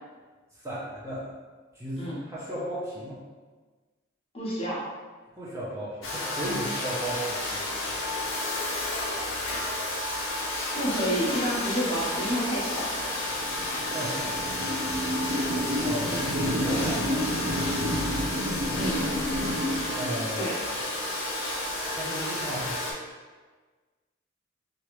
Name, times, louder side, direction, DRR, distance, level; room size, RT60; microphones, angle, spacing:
voice 1, 0.6-1.3 1.7-3.2 5.3-7.7 13.7-14.5 15.8-17.2 19.9-20.5 21.9-22.8, right 1 dB, 15° right, -8 dB, 0.6 m, -35 dB
voice 2, 4.3-4.9 10.7-12.9 16.1-16.2 18.8-19.1 20.4-20.6, equal, 30° left, -7 dB, 0.9 m, -29 dB
Domestic sounds home sounds, 6.0-22.9, left 2 dB, 75° left, 0.7 m, -31 dB
sound 1, 11.9-20.7, equal, 85° right, 0.5 m, -31 dB
3.1 x 2.4 x 3.0 m, 1.4 s
head